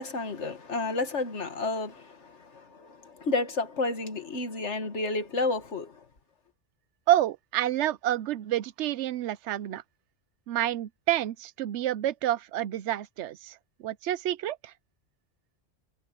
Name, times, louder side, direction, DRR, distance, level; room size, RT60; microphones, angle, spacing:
voice 1, 0.0-6.1, left 3 dB, 90° left, 2.1 m, -31 dB
voice 2, 7.1-9.8 10.5-14.7, right 13 dB, 85° right, 0.9 m, -28 dB
omnidirectional pair, 1.2 m